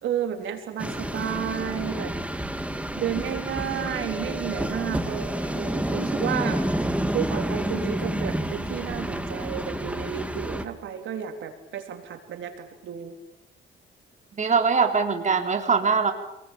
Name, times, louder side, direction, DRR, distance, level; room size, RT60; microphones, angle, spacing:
voice 1, 0.0-2.1 3.0-6.6 7.1-13.2, right 9 dB, 75° right, 5 dB, 3.9 m, -32 dB
sound 1, 0.8-10.6, right 1 dB, 5° right, 2.7 m, -29 dB
voice 2, 14.4-16.1, right 5 dB, 35° right, 4 dB, 3.9 m, -22 dB
28.0 x 20.5 x 9.1 m, 0.84 s
cardioid pair, 90°, 20 cm